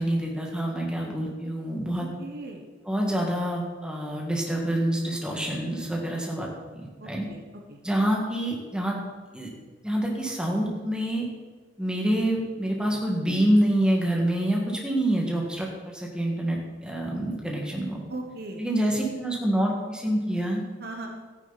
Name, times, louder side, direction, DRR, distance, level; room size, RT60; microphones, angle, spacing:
voice 1, 0.0-2.1 2.9-6.5 6.7-7.2 7.8-9.0 9.3-9.5 9.8-11.3 11.8-18.0 18.6-20.6, right 1 dB, 5° right, -1 dB, 1.8 m, -26 dB
voice 2, 2.0-2.6 7.0-7.4 7.7-7.8 18.1-18.6 20.8-21.1, right 2 dB, 55° right, 2 dB, 1.2 m, -38 dB
13.5 x 10.0 x 4.1 m, 1.4 s
head